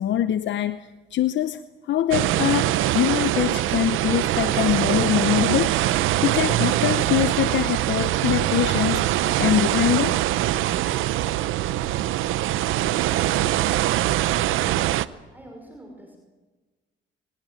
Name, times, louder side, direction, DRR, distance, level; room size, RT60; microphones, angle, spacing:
voice 1, 0.0-10.2, left 11 dB, 65° left, 13 dB, 0.8 m, -24 dB
sound 1, 2.1-15.1, right 14 dB, 90° right, 0.7 m, -23 dB
voice 2, 15.3-16.2, right 1 dB, 10° right, 2 dB, 5.6 m, -46 dB
25.0 x 19.5 x 9.0 m, 1.3 s
cardioid pair, 90°, 20 cm